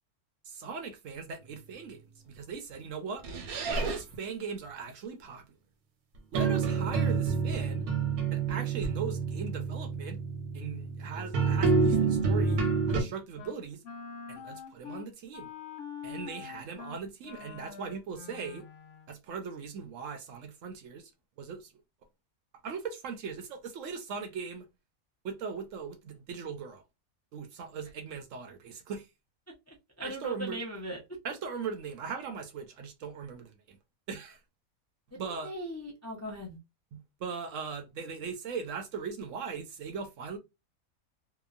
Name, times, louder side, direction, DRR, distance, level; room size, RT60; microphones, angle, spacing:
voice 1, 0.4-3.2 3.7-5.4 6.3-7.9 8.3-10.2 10.5-12.6 12.9-13.8 14.3-15.5 16.0-18.7 19.1-21.1 21.4-21.7 22.6-24.7 25.2-26.8 27.3-29.1 30.0-30.6 31.2-33.8 34.1-34.4 35.1-35.5 36.9-40.4, right 5 dB, 70° right, 0.9 m, -39 dB
sound 1, 3.2-4.2 6.3-13.0, right 5 dB, 85° right, 1.2 m, -28 dB
Wind instrument woodwind instrument, 11.9-13.1 13.4-13.6 13.8-19.1, left 7 dB, 65° left, 0.9 m, -45 dB
voice 2, 29.7-31.0 35.1-36.6, equal, 25° left, 0.3 m, -39 dB
2.9 x 2.2 x 2.4 m
omnidirectional pair, 1.5 m